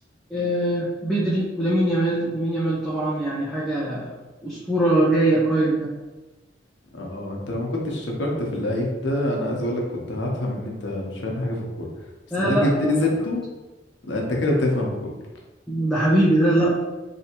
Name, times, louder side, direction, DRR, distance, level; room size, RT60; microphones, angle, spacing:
voice 1, 0.3-4.2 4.4-5.9 12.3-13.1 15.7-16.7, right 1 dB, ahead, -8 dB, 0.5 m, -22 dB
voice 2, 6.9-9.8 10.1-11.9 12.4-13.4 14.0-15.1, left 1 dB, 90° left, -1 dB, 0.8 m, -25 dB
3.4 x 2.8 x 2.8 m, 1.1 s
head